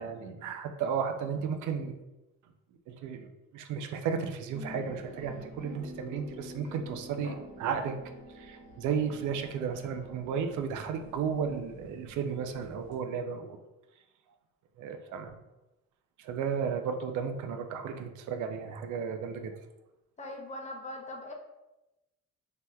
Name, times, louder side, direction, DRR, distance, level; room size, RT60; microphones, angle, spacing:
voice 1, 0.0-2.0 2.9-3.3 3.5-7.9 8.3-13.6 14.8-15.4 16.2-19.5, right 6 dB, 75° right, 6 dB, 0.5 m, -34 dB
sound 1, 4.5-12.9, equal, 75° left, 1.1 m, -49 dB
voice 2, 20.2-21.3, left 1 dB, 25° left, 1 dB, 0.6 m, -40 dB
3.2 x 2.8 x 2.2 m, 0.98 s
cardioid pair, 90°, 30 cm